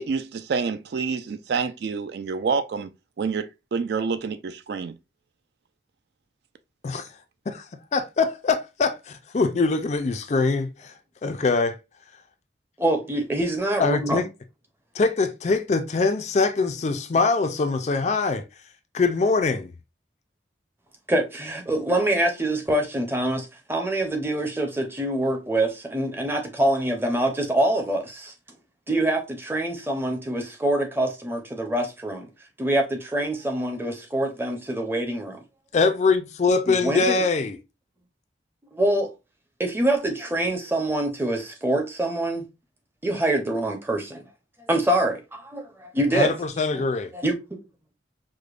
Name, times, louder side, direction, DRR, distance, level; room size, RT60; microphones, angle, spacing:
voice 1, 0.0-2.9 3.2-4.9, right 5 dB, 60° right, 0.3 m, -28 dB
voice 2, 7.9-10.9 11.2-11.8 13.8-14.3 14.9-18.4 18.9-19.7 35.7-37.6 46.1-47.1, left 4 dB, 40° left, 0.4 m, -23 dB
voice 3, 12.8-14.3 21.1-28.3 28.9-32.3 32.6-35.4 36.7-37.2 38.7-39.1 39.6-42.5 43.0-44.3 44.7-46.3 46.7-46.8 47.1-47.3, right 1 dB, 10° right, 0.6 m, -25 dB
4.9 x 2.1 x 2.3 m
head